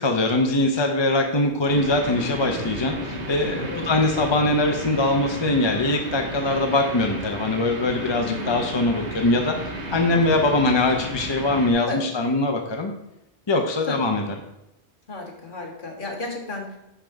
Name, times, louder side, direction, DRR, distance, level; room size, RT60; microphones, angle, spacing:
voice 1, 0.0-9.6 9.9-12.9 13.5-14.2, left 2 dB, 30° left, 3 dB, 0.7 m, -22 dB
sound 1, 1.7-11.7, right 1 dB, 85° right, 1.7 m, -33 dB
voice 2, 8.2-8.6 11.9-12.1 13.9-14.0 15.1-16.8, left 3 dB, 50° left, -1 dB, 1.6 m, -32 dB
10.5 x 3.7 x 4.6 m, 0.89 s
omnidirectional pair, 1.1 m